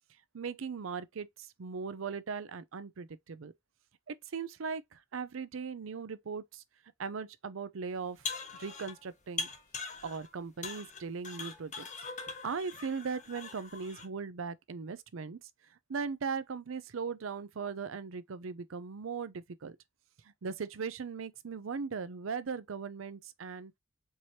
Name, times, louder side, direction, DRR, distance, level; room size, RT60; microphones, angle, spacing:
voice 1, 0.3-3.5 4.1-6.6 7.0-8.2 8.5-9.5 10.0-11.9 12.4-15.5 15.9-19.8 20.2-23.7, right 5 dB, 80° right, 0.5 m, -39 dB
sound 1, 8.0-9.0 9.4-10.3 10.6-14.0, left 4 dB, 40° left, 1.1 m, -41 dB
4.7 x 2.9 x 2.8 m
head